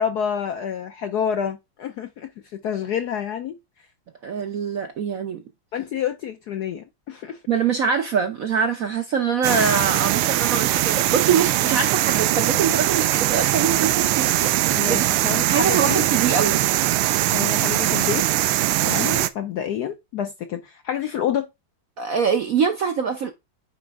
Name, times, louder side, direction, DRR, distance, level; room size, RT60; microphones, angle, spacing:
voice 1, 0.0-3.6 5.7-7.4 14.7-16.0 17.2-18.3 18.8-21.5, left 8 dB, 70° left, 0.9 m, -28 dB
voice 2, 4.2-5.4 7.5-15.1 15.5-16.6 22.0-23.3, right 6 dB, 65° right, 0.9 m, -24 dB
sound 1, 9.4-19.3, right 15 dB, 90° right, 1.5 m, -21 dB
9.2 x 4.3 x 3.5 m
omnidirectional pair, 2.3 m